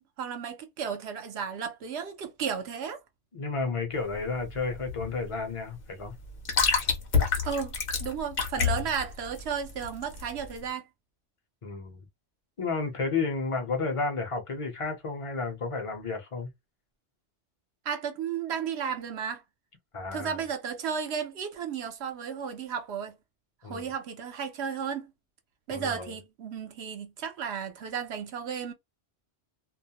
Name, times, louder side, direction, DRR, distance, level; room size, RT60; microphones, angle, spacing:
voice 1, 0.0-3.0 7.4-7.7 8.0-10.9 17.8-19.4 20.1-23.1 23.6-25.1 25.7-28.7, right 7 dB, 70° right, 0.9 m, -34 dB
voice 2, 3.3-6.1 8.6-8.7 11.6-12.0 12.6-16.5 19.9-20.4 23.6-23.8 25.7-26.1, left 4 dB, 35° left, 0.7 m, -32 dB
sound 1, 3.9-10.6, left 5 dB, 55° left, 0.9 m, -29 dB
2.3 x 2.0 x 2.8 m
omnidirectional pair, 1.2 m